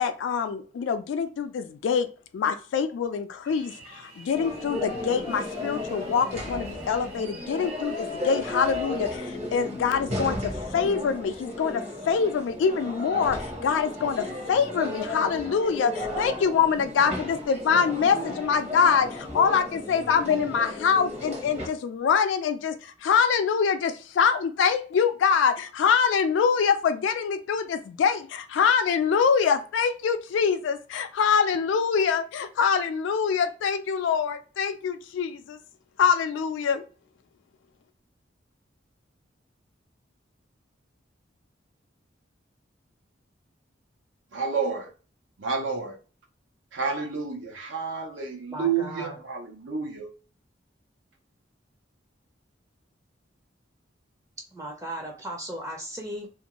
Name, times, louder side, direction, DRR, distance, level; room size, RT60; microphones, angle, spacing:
voice 1, 0.0-2.1 2.3-35.6 36.0-36.8, left 6 dB, 80° left, 8 dB, 0.3 m, -25 dB
sound 1, 3.4-9.2, right 2 dB, 55° right, 1.3 m, -48 dB
sound 2, 4.3-21.7, left 2 dB, 35° right, 0.9 m, -34 dB
voice 2, 44.3-44.9 45.4-46.0 46.7-50.1, right 5 dB, 85° right, 2 dB, 0.6 m, -30 dB
voice 3, 48.5-49.1 54.5-56.3, right 1 dB, 15° right, 1 dB, 0.5 m, -36 dB
2.5 x 2.2 x 2.9 m, 0.37 s
head